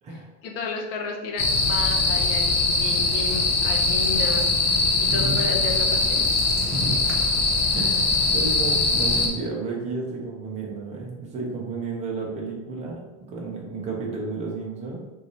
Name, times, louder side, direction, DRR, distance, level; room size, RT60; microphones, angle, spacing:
voice 1, 0.4-6.3, left 4 dB, 55° left, 1 dB, 0.8 m, -33 dB
sound 1, 1.4-9.3, left 3 dB, 30° left, 0.4 m, -22 dB
voice 2, 5.1-5.4 6.7-7.2 7.7-15.0, right 3 dB, 20° right, -2 dB, 0.6 m, -32 dB
3.2 x 2.7 x 4.0 m, 1.1 s
cardioid pair, 170°, 37 cm